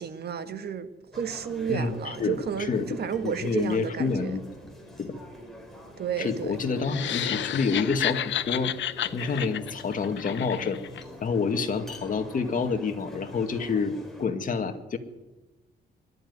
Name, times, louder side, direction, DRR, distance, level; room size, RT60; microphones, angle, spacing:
voice 1, 0.0-4.4 6.0-6.6, right 7 dB, 60° right, 1.6 m, -32 dB
sound 1, 1.1-14.3, left 1 dB, ahead, 4.7 m, -45 dB
voice 2, 1.7-2.9 3.2-4.4 5.0-5.2 6.2-8.7 9.1-10.8 11.2-15.0, left 5 dB, 45° left, 2.1 m, -28 dB
sound 2, 6.8-11.0, left 11 dB, 90° left, 0.8 m, -31 dB
22.0 x 13.0 x 9.7 m
wide cardioid pair, 150°, 19 cm